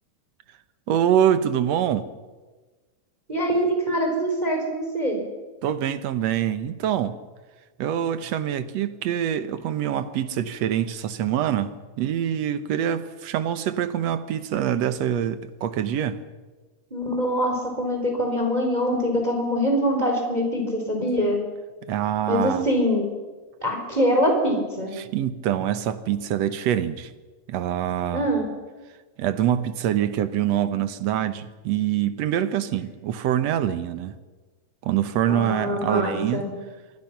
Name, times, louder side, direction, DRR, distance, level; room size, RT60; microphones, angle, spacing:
voice 1, 0.9-2.1 5.6-7.2 7.8-16.2 21.9-22.7 25.0-27.1 27.5-28.3 29.2-34.2 34.8-36.5, right 10 dB, 65° right, 12 dB, 2.1 m, -25 dB
voice 2, 3.3-5.2 16.9-21.4 22.3-23.1 23.6-24.9 28.1-28.5 35.3-36.5, equal, 15° right, 2 dB, 4.0 m, -24 dB
27.0 x 22.5 x 5.9 m, 1.3 s
omnidirectional pair, 3.5 m